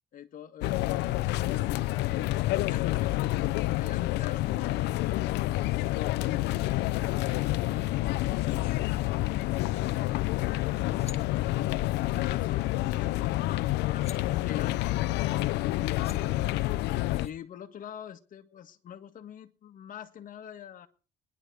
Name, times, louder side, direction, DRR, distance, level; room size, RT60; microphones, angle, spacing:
voice 1, 0.1-3.2 3.7-7.0 7.2-8.9 9.5-16.3 17.1-20.9, left 9 dB, 55° left, 8 dB, 1.7 m, -46 dB
sound 1, 0.6-17.3, left 17 dB, 90° left, 0.7 m, -28 dB
sound 2, 9.3-9.7 10.6-10.7 10.9-11.2 13.1-13.2 13.5-14.2 15.6-15.7 16.0-16.2 17.1-17.3, left 6 dB, 35° left, 2.1 m, -49 dB
20.5 x 11.0 x 4.9 m, 0.39 s
cardioid pair, 110°, 17 cm